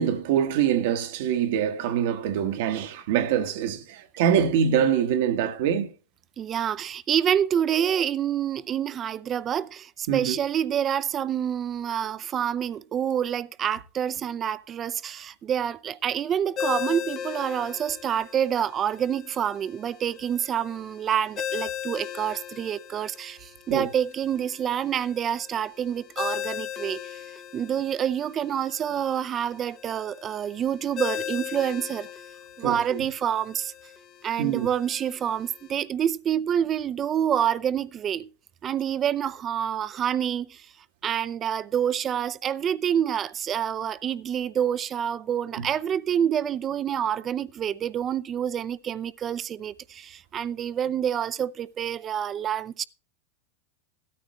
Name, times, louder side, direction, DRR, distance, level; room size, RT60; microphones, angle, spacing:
voice 1, 0.0-5.9 10.1-10.3 23.7-23.9 32.6-33.0 34.4-34.7 45.6-45.7, right 8 dB, 70° right, 1.3 m, -24 dB
voice 2, 6.4-27.2 27.5-32.1 32.6-33.7 34.2-38.3 38.6-40.7 41.0-52.8, right 9 dB, 30° right, 0.6 m, -27 dB
Ringtone, 16.6-35.7, left 9 dB, 35° left, 0.9 m, -38 dB
16.0 x 13.0 x 3.1 m
supercardioid pair, 125°, 0 cm